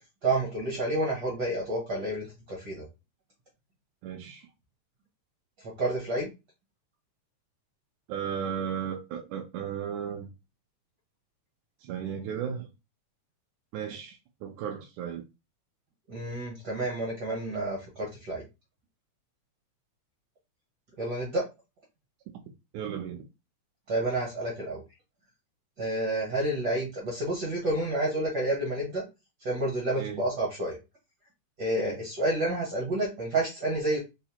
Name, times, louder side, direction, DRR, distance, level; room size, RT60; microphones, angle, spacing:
voice 1, 0.2-2.8 5.8-6.3 16.1-18.4 21.0-21.4 23.9-24.8 25.8-29.0 29.4-30.8 31.6-34.0, right 1 dB, 65° right, 1.0 m, -29 dB
voice 2, 4.0-4.5 8.1-10.3 11.8-12.7 13.7-15.2 22.7-23.3 30.0-30.2 31.8-32.0, right 8 dB, 85° right, 2.0 m, -35 dB
4.8 x 2.1 x 2.8 m
omnidirectional pair, 3.4 m